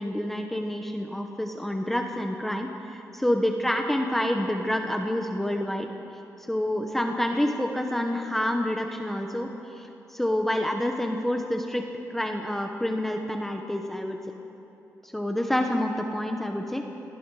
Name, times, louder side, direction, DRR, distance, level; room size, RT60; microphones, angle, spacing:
voice 1, 0.0-5.9 6.4-11.8 12.1-14.2 15.0-16.8, left 1 dB, 5° left, 3 dB, 1.0 m, -28 dB
29.0 x 19.5 x 4.8 m, 3.0 s
wide cardioid pair, 170°, 6 cm